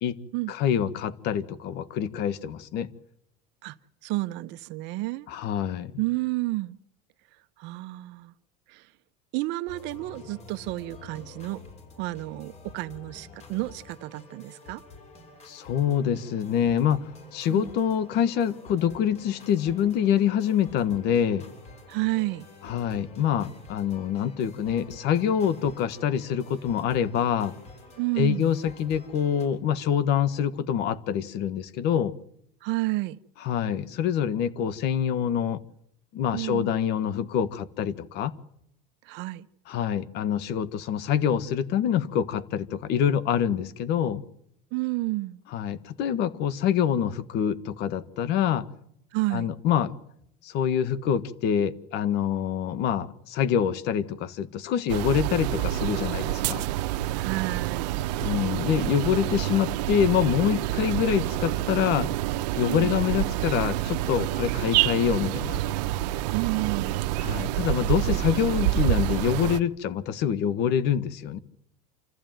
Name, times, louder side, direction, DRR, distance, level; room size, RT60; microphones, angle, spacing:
voice 1, 0.5-2.9 5.3-5.9 15.5-21.5 22.6-27.5 28.2-32.1 33.4-35.6 36.1-38.3 39.7-44.2 45.5-48.7 49.3-49.9 50.4-56.6 58.2-62.1 62.5-65.6 67.2-71.4, left 9 dB, 55° left, 1.5 m, -26 dB
voice 2, 4.0-5.3 6.0-6.8 7.6-8.3 8.7-8.8 9.3-11.6 12.0-14.8 17.5-17.8 21.9-22.4 28.0-28.5 32.6-33.2 36.3-36.7 39.1-39.4 44.7-45.4 49.1-49.5 57.1-58.0 62.7-63.0 66.3-67.0, right 20 dB, 60° right, 0.9 m, -30 dB
sound 1, 9.7-29.5, left 2 dB, 35° left, 7.7 m, -48 dB
sound 2, 54.9-69.6, right 15 dB, 85° right, 0.9 m, -27 dB
27.5 x 14.5 x 9.2 m
supercardioid pair, 135°, 20 cm